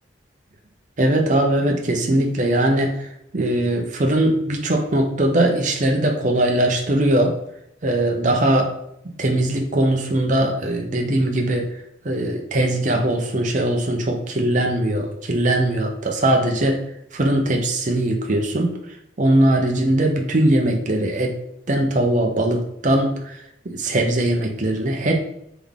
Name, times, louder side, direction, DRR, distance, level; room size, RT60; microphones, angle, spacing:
voice 1, 1.0-2.9 3.3-7.4 7.8-8.7 9.2-11.7 12.0-16.8 17.1-18.7 19.2-21.4 21.7-23.4 23.7-25.1, right 1 dB, 40° right, 2 dB, 0.6 m, -20 dB
3.8 x 3.5 x 3.6 m, 0.77 s
head